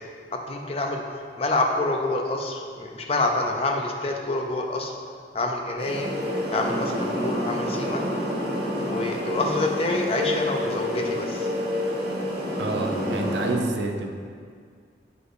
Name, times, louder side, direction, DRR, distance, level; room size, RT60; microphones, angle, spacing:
voice 1, 0.3-1.0 1.4-4.9 5.3-6.2 6.5-8.0 8.8-11.5, left 2 dB, 35° left, 2 dB, 0.5 m, -27 dB
sound 1, 5.8-13.5, left 1 dB, 65° right, 1.4 m, -28 dB
voice 2, 12.6-14.1, right 2 dB, 85° right, 3 dB, 0.6 m, -28 dB
7.9 x 5.1 x 2.6 m, 2.1 s
head